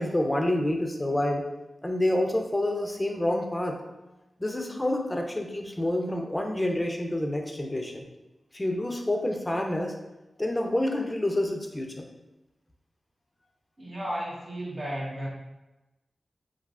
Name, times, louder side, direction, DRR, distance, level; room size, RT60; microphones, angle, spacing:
voice 1, 0.0-1.5 1.8-3.8 4.4-7.9 8.5-9.9 10.4-12.1, left 1 dB, 20° left, 2 dB, 0.5 m, -28 dB
voice 2, 13.8-15.3, equal, 50° right, -5 dB, 1.0 m, -33 dB
3.2 x 2.3 x 2.4 m, 1.0 s
cardioid pair, 45°, 0 cm